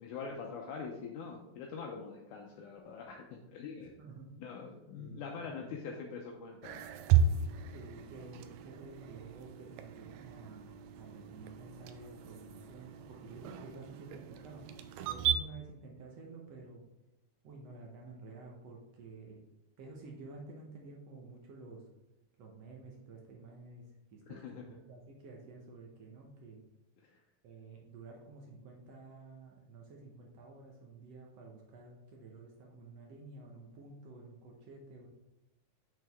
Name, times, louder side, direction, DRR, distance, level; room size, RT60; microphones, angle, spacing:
voice 1, 0.0-4.0 4.4-6.9 24.3-24.6 27.1-27.2, left 5 dB, 75° left, 1 dB, 2.0 m, -44 dB
voice 2, 4.0-4.3 5.0-5.8 7.7-14.7 15.1-16.8 17.4-19.4 19.8-21.8 22.4-23.9 24.1-24.5 24.9-26.6 27.4-35.1, right 3 dB, 65° right, 0 dB, 1.7 m, -51 dB
sound 1, 6.6-15.4, right 7 dB, 85° right, 1.6 m, -35 dB
6.5 x 6.4 x 3.5 m, 0.93 s
omnidirectional pair, 3.8 m